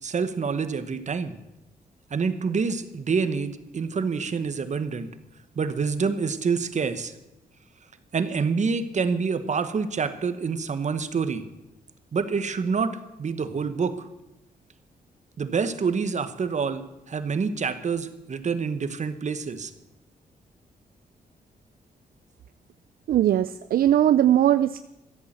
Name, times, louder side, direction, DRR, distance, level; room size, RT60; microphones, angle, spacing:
voice 1, 0.0-1.4 2.1-5.1 5.5-7.1 8.1-11.4 12.1-12.9 13.2-14.1 15.4-19.7, right 5 dB, 50° right, 11 dB, 1.3 m, -27 dB
voice 2, 23.1-24.8, right 11 dB, 70° right, 13 dB, 0.5 m, -20 dB
14.0 x 8.5 x 7.6 m, 0.94 s
cardioid pair, 65°, 15 cm